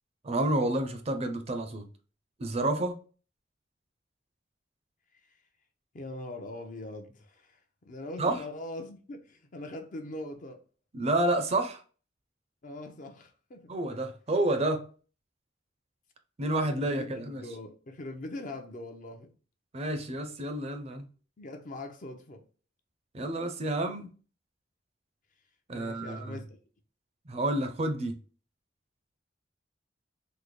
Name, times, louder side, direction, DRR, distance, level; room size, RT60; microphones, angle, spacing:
voice 1, 0.2-1.9 2.4-3.0 8.2-8.4 10.9-11.8 13.7-14.9 16.4-17.4 19.7-21.1 23.1-24.1 25.7-26.4 27.3-28.2, right 1 dB, 35° right, 0.5 m, -29 dB
voice 2, 5.9-10.6 12.6-13.7 16.4-19.3 21.4-22.5 25.7-26.6, left 2 dB, 45° left, 0.6 m, -42 dB
3.8 x 2.1 x 3.1 m
head